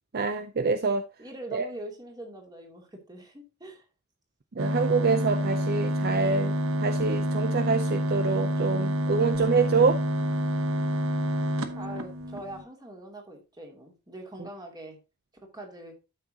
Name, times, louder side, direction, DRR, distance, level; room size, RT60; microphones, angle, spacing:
voice 1, 0.1-1.0 1.5-1.7 4.6-6.5 6.8-10.0, right 4 dB, 45° right, 0.5 m, -26 dB
voice 2, 1.2-3.8 11.8-15.0 15.4-16.0, right 1 dB, 20° right, 2.6 m, -42 dB
sound 1, 4.6-12.6, equal, 65° right, 1.1 m, -28 dB
12.5 x 6.2 x 2.8 m
head